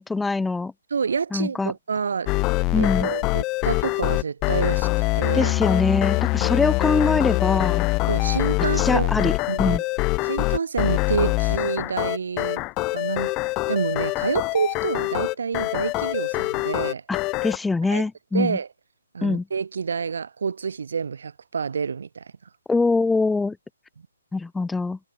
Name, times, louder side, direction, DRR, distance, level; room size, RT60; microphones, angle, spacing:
voice 1, 0.0-0.7 1.3-1.7 2.7-3.1 5.3-7.9 8.8-9.3 9.6-9.8 17.1-18.6 19.2-19.4 22.7-23.6 24.3-25.0, left 3 dB, 5° left, 1.6 m, -23 dB
voice 2, 0.9-2.3 2.8-4.9 5.2-5.5 8.1-9.8 10.2-12.6 12.9-13.3 13.7-17.0 17.9-18.0 18.3-18.7 19.1-22.3, right 6 dB, 70° right, 2.8 m, -28 dB
sound 1, 2.3-17.6, left 23 dB, 20° left, 2.9 m, -24 dB
hypercardioid pair, 160°, 0 cm